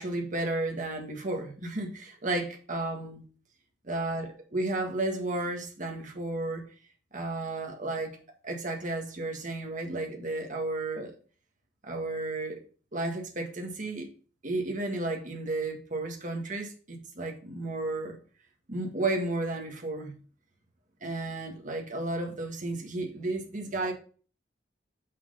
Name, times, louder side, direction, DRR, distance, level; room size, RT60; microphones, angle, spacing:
voice 1, 0.0-3.2 3.9-6.6 7.1-8.1 8.4-11.1 11.8-12.6 12.9-14.1 14.4-18.2 18.7-20.2 21.0-23.9, right 2 dB, 40° right, 1.7 m, -33 dB
6.2 x 5.8 x 5.5 m
head